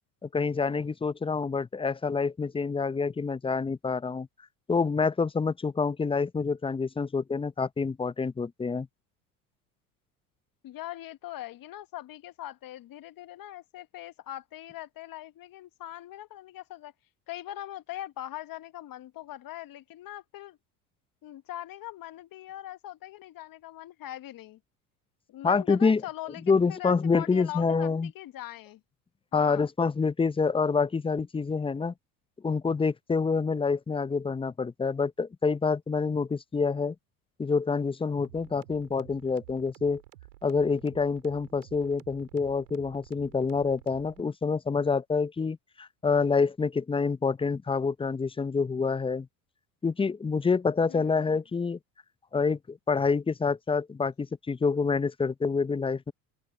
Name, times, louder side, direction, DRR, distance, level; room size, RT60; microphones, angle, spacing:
voice 1, 0.2-4.3 4.7-8.9 25.4-26.0 26.5-28.1 29.3-31.9 32.4-36.9 37.4-40.0 40.4-49.3 49.8-51.8 52.3-56.1, left 4 dB, 10° left, 0.7 m, -27 dB
voice 2, 10.6-16.9 17.3-20.6 21.2-24.6 25.3-28.8 29.3-29.6 50.9-51.4, left 14 dB, 45° left, 1.6 m, -41 dB
sound 1, 38.2-44.2, right 16 dB, 80° right, 5.4 m, -52 dB
open air
hypercardioid pair, 75°, 46 cm